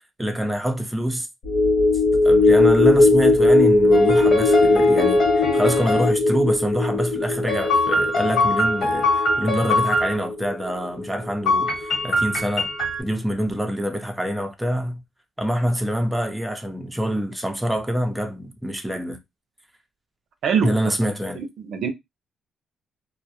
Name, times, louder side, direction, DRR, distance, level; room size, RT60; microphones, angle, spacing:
voice 1, 0.2-1.3 2.2-12.7 13.0-15.0 15.4-19.2 20.6-21.4, equal, 5° right, 0.5 m, -26 dB
sound 1, 1.4-12.0 12.4-12.5, left 2 dB, 80° left, 0.8 m, -19 dB
sound 2, 3.9-6.1 7.5-10.1 11.5-13.0, left 2 dB, 60° left, 1.3 m, -23 dB
voice 2, 20.4-20.8 21.4-21.9, right 6 dB, 70° right, 0.5 m, -23 dB
2.1 x 2.0 x 2.7 m
cardioid pair, 90°, 0 cm